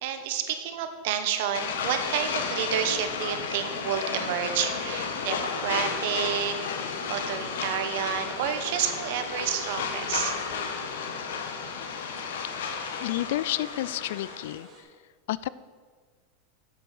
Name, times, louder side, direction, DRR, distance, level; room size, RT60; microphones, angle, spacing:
voice 1, 0.0-6.6 7.1-10.4, right 9 dB, 65° right, 8 dB, 1.1 m, -30 dB
sound 1, 1.5-14.6, left 5 dB, 90° left, 1.2 m, -33 dB
sound 2, 5.2-11.3 11.7-11.8 12.1-14.8, right 2 dB, 30° right, 2.3 m, -53 dB
voice 2, 13.0-14.9 15.3-15.5, left 15 dB, 70° left, 18 dB, 0.3 m, -30 dB
7.9 x 7.6 x 6.6 m, 1.5 s
supercardioid pair, 140°, 0 cm